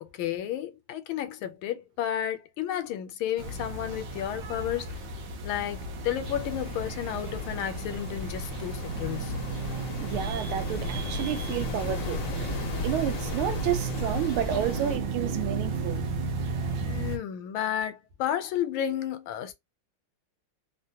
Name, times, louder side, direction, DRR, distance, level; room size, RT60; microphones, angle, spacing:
voice 1, 0.0-4.9 5.4-9.3 16.8-19.5, left 10 dB, 80° left, 1.4 m, -32 dB
sound 1, 3.4-17.2, right 3 dB, 70° right, 1.4 m, -34 dB
sound 2, 6.2-15.0, left 1 dB, 60° left, 0.8 m, -35 dB
voice 2, 10.0-12.5 12.8-16.1, right 10 dB, 85° right, 1.5 m, -31 dB
3.5 x 2.1 x 2.7 m
omnidirectional pair, 2.3 m